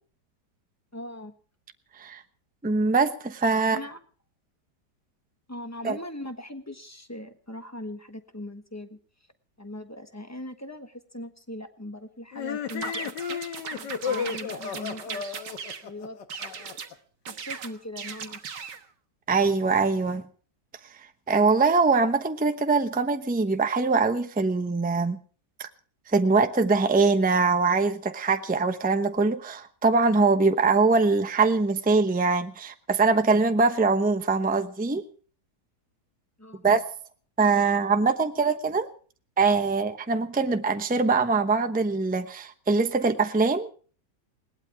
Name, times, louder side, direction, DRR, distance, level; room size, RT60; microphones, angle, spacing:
voice 1, 0.9-1.3 3.7-4.0 5.5-9.0 9.6-15.2 15.8-16.2 16.5-16.8 17.3-18.6 36.4-36.8, left 1 dB, 10° left, 7 dB, 1.1 m, -40 dB
voice 2, 2.6-3.8 5.8-6.0 19.3-20.2 21.3-25.2 25.6-25.7 26.1-35.0 36.6-36.8 37.4-38.9 39.4-43.7, right 4 dB, 10° right, 8 dB, 0.6 m, -23 dB
sound 1, 12.3-16.9, left 7 dB, 85° left, 1.8 m, -33 dB
sound 2, 12.7-15.9 16.3-16.9 17.3-18.8, right 6 dB, 85° right, 2.0 m, -38 dB
20.5 x 18.5 x 3.5 m, 0.41 s
omnidirectional pair, 1.8 m